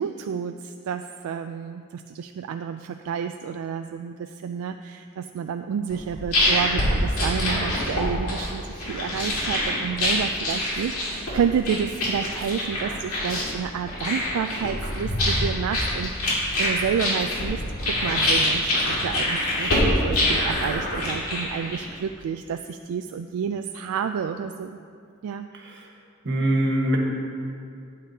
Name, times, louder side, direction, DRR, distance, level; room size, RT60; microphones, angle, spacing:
voice 1, 0.0-24.8 25.2-25.5, right 7 dB, 80° right, 8 dB, 0.3 m, -30 dB
sound 1, 5.9-22.0, left 1 dB, 85° left, 2.3 m, -25 dB
voice 2, 25.5-25.9 26.2-27.0, right 1 dB, 55° right, -1 dB, 1.4 m, -23 dB
12.5 x 8.4 x 2.8 m, 2.4 s
head